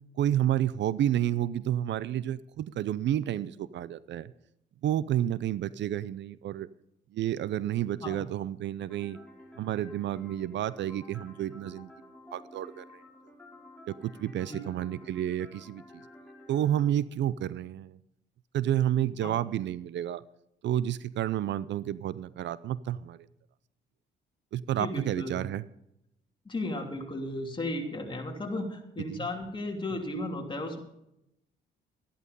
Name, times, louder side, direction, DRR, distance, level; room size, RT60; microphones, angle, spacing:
voice 1, 0.2-4.3 4.8-6.7 7.1-9.2 9.6-11.9 12.3-13.0 13.9-15.8 16.5-18.0 18.5-20.2 20.6-23.3 24.5-25.6 29.1-29.3, right 11 dB, 65° right, 18 dB, 0.5 m, -30 dB
sound 1, 8.9-16.9, left 1 dB, 5° left, 5.0 m, -52 dB
voice 2, 24.8-25.3 26.4-30.8, left 1 dB, 25° left, 2 dB, 3.0 m, -35 dB
13.0 x 11.5 x 5.4 m, 0.82 s
cardioid pair, 90°, 20 cm